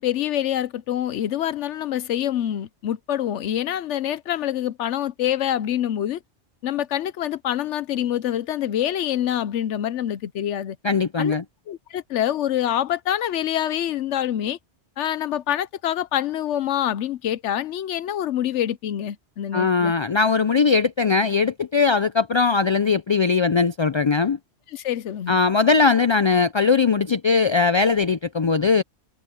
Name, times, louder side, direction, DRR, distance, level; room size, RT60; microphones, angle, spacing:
voice 1, 0.0-6.2 6.6-10.8 11.2-11.4 11.7-14.6 15.0-19.9 24.7-25.4, left 11 dB, 80° left, 1.0 m, -26 dB
voice 2, 10.8-11.4 19.5-24.4 25.3-28.8, left 4 dB, 50° left, 0.3 m, -20 dB
omnidirectional pair, 1.2 m